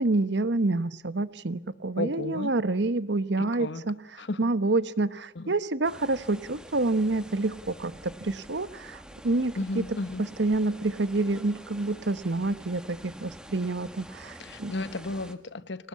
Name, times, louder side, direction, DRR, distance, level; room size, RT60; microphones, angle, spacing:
voice 1, 0.0-4.0 4.4-9.8 10.2-14.7, right 2 dB, 65° right, 15 dB, 1.1 m, -28 dB
voice 2, 2.0-2.5 3.6-3.8 4.2-4.5 5.3-5.5 9.6-10.2 14.4-15.9, left 2 dB, 70° left, 14 dB, 1.2 m, -33 dB
sound 1, 5.8-15.3, equal, 5° right, 1.6 m, -47 dB
25.0 x 18.5 x 8.5 m, 0.80 s
head